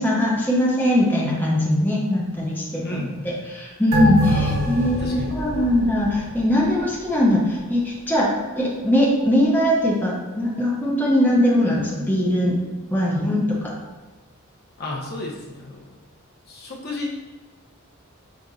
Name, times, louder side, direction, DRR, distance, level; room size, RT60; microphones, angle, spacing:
voice 1, 0.0-8.3 8.6-12.5 12.9-13.7, left 1 dB, 10° left, -5 dB, 0.7 m, -21 dB
voice 2, 2.8-3.3 4.3-5.3 14.8-15.8 16.5-17.1, left 2 dB, 45° left, -2 dB, 0.8 m, -31 dB
sound 1, 3.9-6.8 7.2-7.3, equal, 70° right, 1.5 m, -25 dB
6.2 x 2.6 x 2.4 m, 1.3 s
head